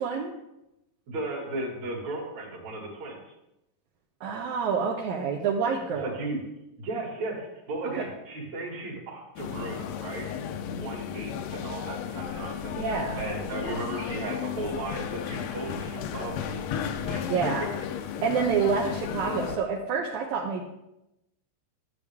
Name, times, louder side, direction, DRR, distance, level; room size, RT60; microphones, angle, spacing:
voice 1, 0.0-0.3 4.2-6.1 7.8-8.0 12.8-13.3 17.3-17.7 18.2-20.6, right 6 dB, 70° right, -1 dB, 2.1 m, -28 dB
voice 2, 1.1-3.3 6.0-6.4 6.8-10.3 10.7-12.8 13.2-17.3, right 2 dB, 55° right, -1 dB, 3.2 m, -35 dB
sound 1, 9.4-19.6, left 9 dB, 80° left, 1.5 m, -34 dB
11.5 x 8.2 x 3.5 m, 0.88 s
omnidirectional pair, 3.8 m